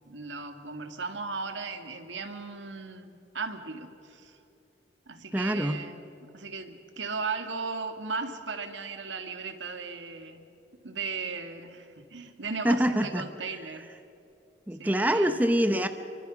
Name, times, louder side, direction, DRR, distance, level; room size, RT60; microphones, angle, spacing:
voice 1, 0.1-4.4 5.1-10.5 10.8-13.9 14.8-15.4, right 4 dB, 75° right, 7 dB, 2.0 m, -37 dB
voice 2, 5.3-5.8 12.6-13.2 14.7-15.9, equal, 10° right, 8 dB, 0.8 m, -25 dB
26.5 x 24.0 x 6.2 m, 2.9 s
head